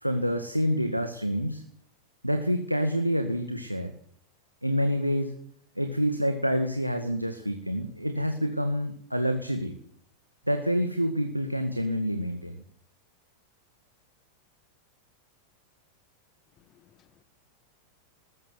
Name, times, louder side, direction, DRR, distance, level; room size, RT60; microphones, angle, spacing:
voice 1, 0.0-1.6 2.2-3.9 4.6-5.3 5.8-9.8 10.5-12.6, equal, 90° right, 1.9 m, -27 dB
voice 2, 16.6-17.2, left 11 dB, 30° left, 1.8 m, -62 dB
20.0 x 14.5 x 9.4 m
figure-of-eight pair, 90°, 0 cm